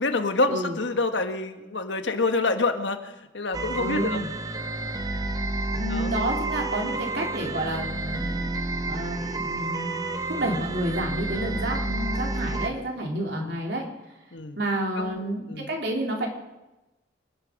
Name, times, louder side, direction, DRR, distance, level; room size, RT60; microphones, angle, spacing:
voice 1, 0.0-4.2 5.9-6.1 11.5-11.7 13.4-13.6 14.3-14.6 15.0-15.2 15.5-15.7, left 3 dB, 80° left, 7 dB, 1.5 m, -27 dB
sound 1, 3.5-12.7, right 2 dB, 20° right, 0.7 m, -30 dB
voice 2, 3.8-4.3 5.7-10.0 10.3-13.9 14.6-16.3, right 1 dB, 65° right, 1 dB, 3.3 m, -30 dB
25.5 x 10.5 x 5.2 m, 1.0 s
head